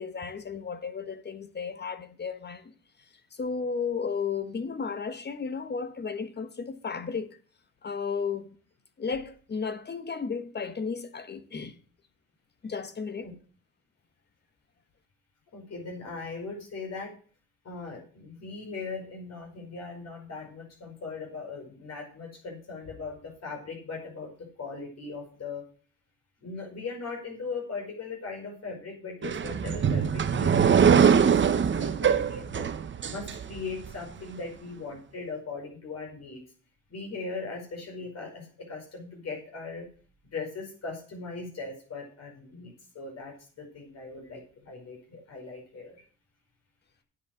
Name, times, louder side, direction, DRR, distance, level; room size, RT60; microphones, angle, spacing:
voice 1, 0.0-2.7 3.3-7.4 7.8-8.5 9.0-11.8 12.6-13.3, left 5 dB, 35° left, 1.2 m, -34 dB
voice 2, 15.5-17.1 17.6-25.6 26.4-32.7 33.0-36.4 36.9-39.9 40.3-46.0, left 4 dB, 55° left, 5.1 m, -39 dB
sound 1, 29.2-33.9, right 7 dB, 40° right, 0.9 m, -23 dB
10.0 x 8.1 x 6.4 m
cardioid pair, 90°, 30 cm